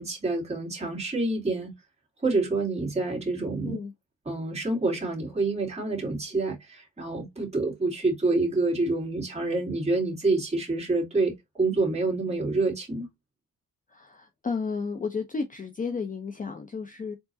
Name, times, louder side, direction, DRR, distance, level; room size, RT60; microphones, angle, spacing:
voice 1, 0.0-1.7 2.2-3.8 4.2-13.1, right 3 dB, 20° right, 2.9 m, -27 dB
voice 2, 13.9-17.2, left 5 dB, 25° left, 0.7 m, -32 dB
4.6 x 3.8 x 2.7 m
wide cardioid pair, 165°, 33 cm